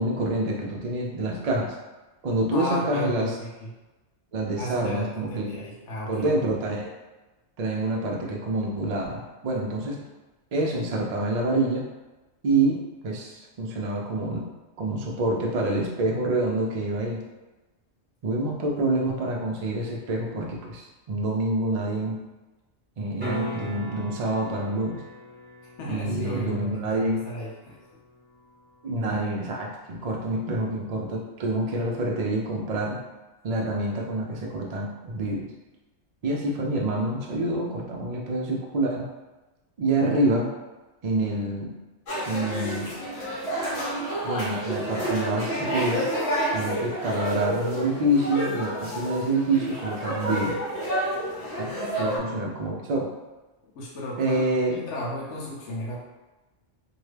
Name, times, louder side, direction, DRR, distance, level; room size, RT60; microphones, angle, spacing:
voice 1, 0.0-1.7 2.2-3.4 4.3-5.6 6.1-6.9 7.6-10.0 10.5-11.8 12.4-14.5 14.8-17.2 18.2-22.2 23.0-25.0 25.9-27.2 28.8-33.0 33.4-35.5 36.2-39.1 39.8-40.5 41.0-41.7 42.3-42.9 44.2-46.1 46.5-50.6 51.6-51.7 52.0-53.1 54.2-54.8, right 2 dB, 50° right, -1 dB, 0.5 m, -27 dB
voice 2, 2.5-3.7 4.6-6.4 25.8-27.8 51.7-51.9 53.7-54.4 54.7-56.0, equal, 85° left, -5 dB, 1.0 m, -34 dB
sound 1, 23.2-29.2 33.9-34.0, equal, 10° right, 0.7 m, -40 dB
sound 2, 42.1-52.2, right 1 dB, 65° left, 1.2 m, -30 dB
2.8 x 2.2 x 3.2 m, 1.1 s
omnidirectional pair, 1.2 m